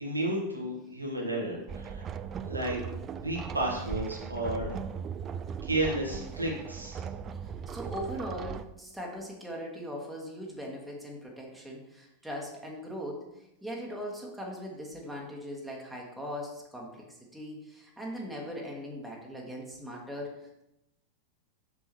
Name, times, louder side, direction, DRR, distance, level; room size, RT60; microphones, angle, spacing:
voice 1, 0.0-2.0 2.5-2.8 3.1-4.7 5.6-7.0, right 1 dB, 80° right, -2 dB, 1.5 m, -32 dB
sound 1, 1.7-8.7, right 7 dB, 30° right, 0.4 m, -38 dB
voice 2, 7.4-20.3, equal, 5° right, -2 dB, 1.4 m, -40 dB
7.2 x 6.1 x 3.1 m, 0.87 s
figure-of-eight pair, 90°, 0 cm